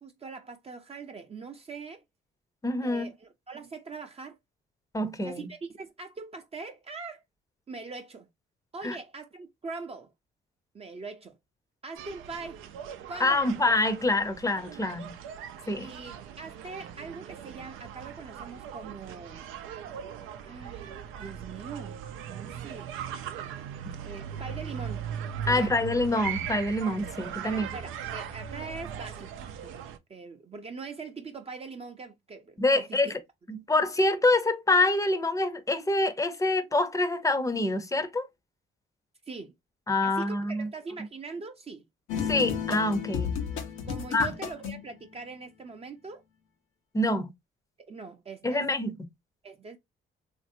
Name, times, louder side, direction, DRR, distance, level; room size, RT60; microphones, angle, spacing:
voice 1, 0.0-2.0 2.8-4.4 5.2-7.2 7.7-8.3 8.7-10.1 10.7-11.4 11.8-12.6 13.1-13.6 15.8-19.5 20.4-23.0 24.0-25.1 25.4-25.7 27.4-29.3 29.6-29.8 30.1-33.1 39.3-39.5 40.0-41.9 43.9-46.2 47.8-48.7 49.4-49.8, right 4 dB, 30° right, 0.5 m, -42 dB
voice 2, 2.6-3.1 4.9-5.5 8.8-9.0 13.2-15.1 15.7-15.9 23.9-24.0 25.5-27.7 32.6-33.1 33.5-38.2 39.9-40.7 42.3-43.4 44.1-44.3 46.9-47.3 48.4-48.9, left 2 dB, 15° left, 0.6 m, -26 dB
sound 1, 12.0-30.0, right 8 dB, 90° right, 0.5 m, -39 dB
sound 2, 42.1-44.9, left 7 dB, 90° left, 0.8 m, -32 dB
3.0 x 2.5 x 2.6 m
cardioid pair, 90°, 20 cm